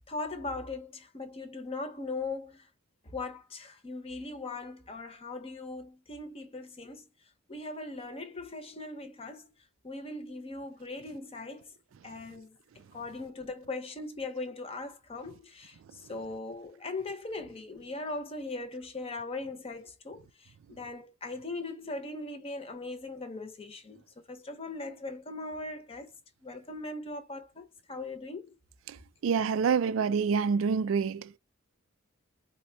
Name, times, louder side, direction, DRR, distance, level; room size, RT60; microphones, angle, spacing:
voice 1, 0.1-2.7 3.1-7.1 7.5-9.4 9.8-11.7 12.0-12.6 12.9-24.0 24.3-26.1 26.4-28.5, left 2 dB, 30° left, 0.7 m, -39 dB
voice 2, 29.2-31.4, right 6 dB, 75° right, 0.3 m, -27 dB
4.1 x 2.2 x 2.6 m
head